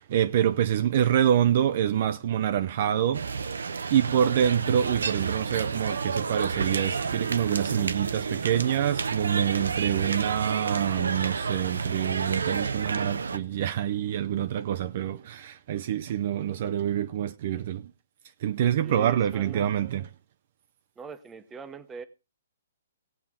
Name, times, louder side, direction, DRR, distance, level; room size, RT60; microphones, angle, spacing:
voice 1, 0.0-3.3 3.9-17.9 18.4-20.1, right 10 dB, 50° right, 0.5 m, -26 dB
street corner outside club busy people cars pass wet, 3.1-13.4, right 5 dB, 90° right, 0.7 m, -30 dB
voice 2, 18.8-19.6 21.0-22.0, right 5 dB, 10° right, 0.9 m, -42 dB
17.5 x 7.2 x 3.7 m
hypercardioid pair, 150°, 0 cm